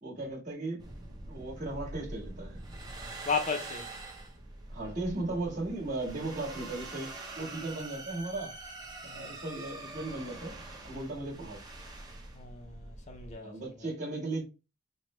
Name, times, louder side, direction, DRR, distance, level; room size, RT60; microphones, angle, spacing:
voice 1, 0.0-0.9 1.3-2.6 4.7-8.5 9.0-10.6 10.8-11.6 13.4-14.4, right 2 dB, 35° right, 1.5 m, -36 dB
sound 1, 0.8-13.4, right 2 dB, 20° right, 0.6 m, -44 dB
voice 2, 3.3-3.9 9.0-9.4 12.3-13.5, left 5 dB, 35° left, 0.5 m, -34 dB
4.7 x 2.1 x 3.0 m
head